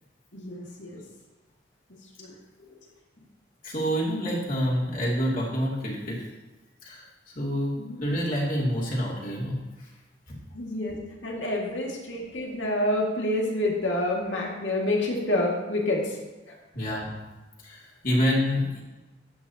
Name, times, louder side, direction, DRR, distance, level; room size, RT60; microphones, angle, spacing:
voice 1, 0.3-1.0 2.2-2.3 7.8-8.0 10.5-11.0 11.2-16.2 16.5-16.9, left 1 dB, 90° left, -1 dB, 2.3 m, -28 dB
voice 2, 3.6-6.2 6.8-9.6 16.7-17.1 17.6-18.8, equal, 50° left, -5 dB, 2.8 m, -27 dB
13.0 x 9.4 x 2.9 m, 1.1 s
head